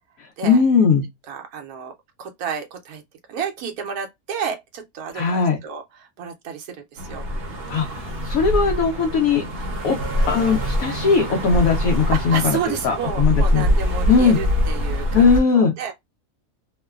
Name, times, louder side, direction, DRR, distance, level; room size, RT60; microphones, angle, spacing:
voice 1, 0.4-1.0 5.1-5.6 7.7-7.9 8.2-9.4 9.8-10.0 10.3-13.6 14.1-14.4 15.1-15.7, left 5 dB, 70° left, 1.1 m, -18 dB
voice 2, 1.3-1.9 2.2-3.0 3.3-7.2 9.3-9.4 12.1-15.3 15.5-15.9, right 7 dB, 80° right, 1.1 m, -30 dB
sound 1, 7.0-15.4, equal, 50° right, 0.7 m, -24 dB
3.0 x 2.1 x 2.3 m
omnidirectional pair, 1.6 m